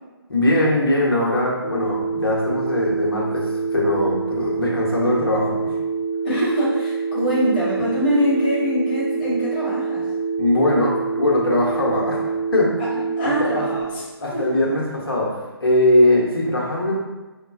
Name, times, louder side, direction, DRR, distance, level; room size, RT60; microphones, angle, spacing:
voice 1, 0.3-5.8 10.4-12.7 13.2-13.7 14.2-16.9, left 1 dB, 65° left, -3 dB, 0.8 m, -21 dB
Telephone, 1.6-13.8, right 5 dB, 20° right, 0.8 m, -26 dB
voice 2, 6.2-10.0 12.8-12.9 13.2-14.0 14.3-14.5, equal, 20° left, -9 dB, 0.9 m, -23 dB
3.1 x 2.2 x 2.4 m, 1.2 s
figure-of-eight pair, 145°, 13 cm